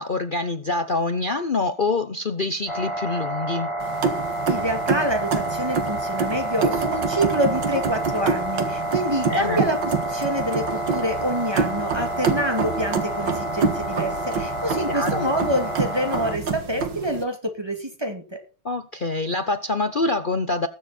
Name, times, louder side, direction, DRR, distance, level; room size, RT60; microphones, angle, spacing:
voice 1, 0.0-3.7 9.3-9.6 14.9-15.3 18.6-20.7, left 3 dB, 65° left, 0.5 m, -25 dB
sound 1, 2.7-16.3, right 1 dB, 20° left, 0.9 m, -29 dB
sound 2, 3.8-17.2, right 5 dB, 65° right, 2.1 m, -27 dB
voice 2, 4.4-9.8 10.1-18.4, equal, 15° right, 2.4 m, -27 dB
20.5 x 7.3 x 4.3 m
omnidirectional pair, 2.1 m